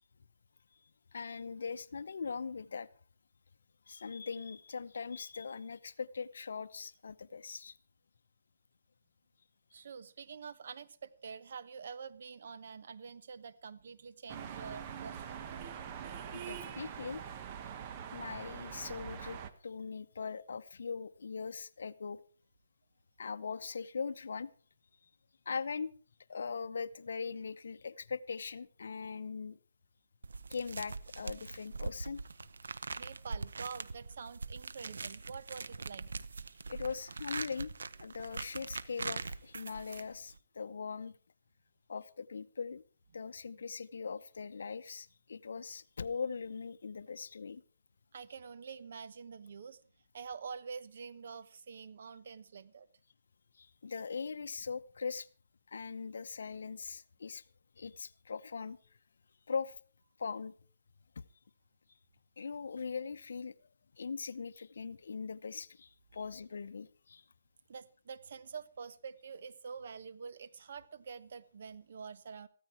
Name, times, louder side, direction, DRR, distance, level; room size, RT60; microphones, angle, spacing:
voice 1, 1.1-2.9 3.9-7.8 16.3-17.3 18.1-22.2 23.2-24.5 25.5-25.9 26.3-29.6 30.5-32.2 36.7-37.7 38.0-41.1 41.9-42.8 43.1-47.6 53.5-55.3 55.7-57.4 57.8-58.8 59.5-59.8 60.2-60.5 61.2-61.3 62.4-63.7 63.9-67.2, left 5 dB, 75° left, 0.7 m, -41 dB
voice 2, 9.7-15.2 15.5-15.6 32.7-36.1 48.1-49.8 50.1-52.9 66.1-66.2 67.7-72.5, right 6 dB, 55° right, 1.1 m, -47 dB
sound 1, 14.3-19.5, right 8 dB, 30° right, 1.1 m, -44 dB
sound 2, 30.2-40.4, right 4 dB, 90° right, 0.9 m, -42 dB
15.0 x 13.5 x 4.7 m
hypercardioid pair, 165°, 0 cm